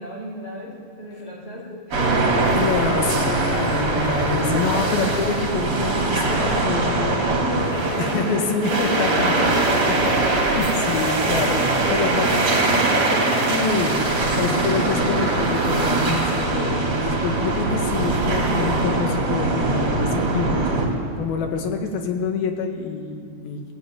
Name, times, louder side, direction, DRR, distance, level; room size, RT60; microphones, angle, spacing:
voice 1, 0.0-2.2 3.9-4.2 7.2-9.2 9.5-9.9 10.2-10.9 12.0-13.9, equal, 25° left, -2 dB, 5.3 m, -34 dB
sound 1, 1.9-20.9, right 2 dB, 45° right, 4.5 m, -22 dB
voice 2, 2.3-7.3 8.0-9.5 10.4-12.3 13.5-14.0 14.4-23.6, left 5 dB, 85° left, 4 dB, 3.5 m, -27 dB
19.5 x 16.0 x 9.2 m, 2.3 s
omnidirectional pair, 4.2 m